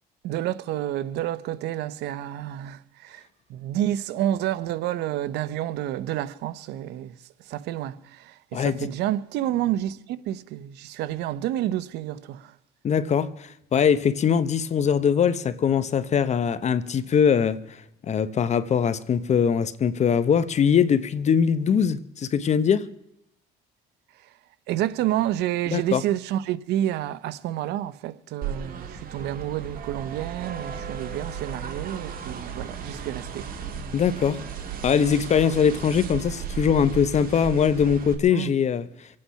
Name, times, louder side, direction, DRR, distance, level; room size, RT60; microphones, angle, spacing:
voice 1, 0.2-3.2 3.5-7.2 7.5-12.5 24.7-33.5 38.3-38.5, right 12 dB, 80° right, 0.8 m, -29 dB
voice 2, 8.5-8.9 12.8-17.6 18.1-22.9 25.7-26.0 33.9-34.4 34.8-38.9, left 7 dB, 40° left, 0.9 m, -22 dB
sound 1, 28.4-38.1, right 7 dB, 60° right, 2.1 m, -35 dB
25.5 x 8.7 x 5.7 m
cardioid pair, 110°, 17 cm